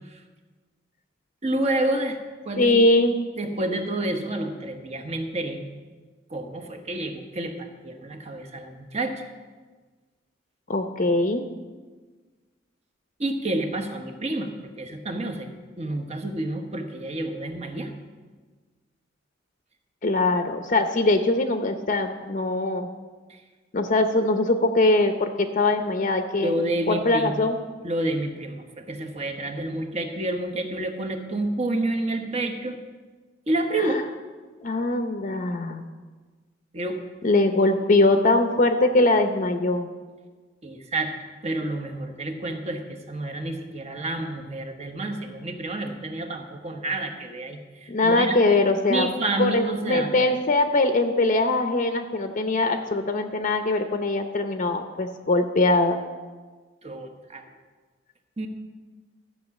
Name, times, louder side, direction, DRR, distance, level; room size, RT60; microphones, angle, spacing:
voice 1, 1.4-2.2 2.4-2.7 3.4-5.6 6.3-9.2 13.2-15.5 15.8-17.9 23.3-23.4 26.4-27.5 27.8-32.8 33.5-34.1 36.7-37.0 40.6-41.1 41.4-48.4 48.9-50.1 56.8-57.4 58.4-58.5, right 1 dB, 35° right, 5 dB, 1.2 m, -29 dB
voice 2, 2.6-3.2 10.7-11.4 20.0-22.9 23.7-26.6 26.9-27.6 33.8-34.0 34.6-35.8 37.2-39.9 47.9-49.1 49.4-56.0, left 2 dB, 45° left, 6 dB, 0.7 m, -22 dB
14.0 x 5.9 x 8.2 m, 1.4 s
head